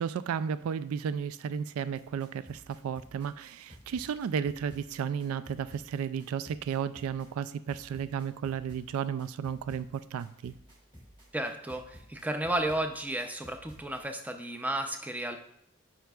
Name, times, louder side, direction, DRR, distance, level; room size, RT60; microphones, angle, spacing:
voice 1, 0.0-10.5, right 7 dB, 85° right, 16 dB, 0.3 m, -33 dB
sound 1, 1.9-14.0, equal, 25° right, 2.4 m, -55 dB
voice 2, 11.3-15.4, right 1 dB, 10° right, 6 dB, 0.5 m, -33 dB
9.0 x 5.7 x 2.3 m, 0.70 s
head